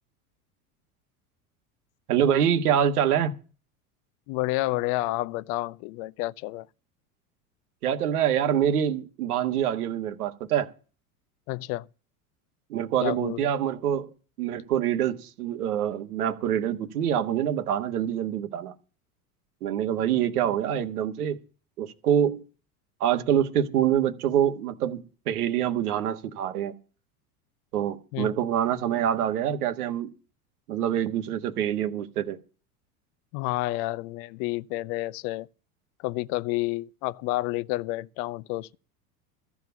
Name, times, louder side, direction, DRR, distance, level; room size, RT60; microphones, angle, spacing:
voice 1, 2.1-3.3 7.8-10.7 12.7-14.1 14.4-18.7 19.6-21.4 21.8-22.4 23.0-26.7 27.7-30.1 30.7-32.4, right 9 dB, 75° right, 1.5 m, -25 dB
voice 2, 4.3-6.7 11.5-11.9 13.0-13.5 20.4-20.5 28.1-28.3 33.3-35.5 36.0-38.8, left 18 dB, 55° left, 0.7 m, -30 dB
14.5 x 7.3 x 6.8 m
hypercardioid pair, 85°, 45 cm